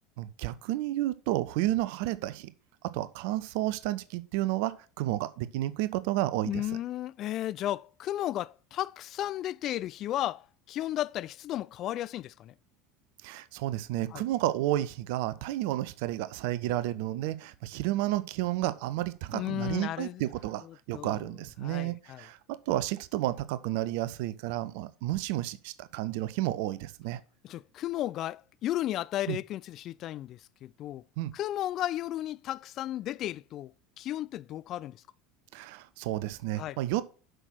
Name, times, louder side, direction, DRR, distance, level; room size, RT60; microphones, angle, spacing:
voice 1, 0.2-2.5 2.9-6.6 13.2-27.2 29.3-29.4 31.2-31.3 35.5-37.0, right 15 dB, 60° right, 0.6 m, -31 dB
voice 2, 6.4-12.5 14.1-14.2 19.3-20.2 20.6-21.3 21.6-22.3 27.4-31.0 31.3-33.7 34.0-35.0 36.6-36.8, left 13 dB, 45° left, 0.3 m, -34 dB
7.9 x 6.2 x 5.9 m
figure-of-eight pair, 70°, 0 cm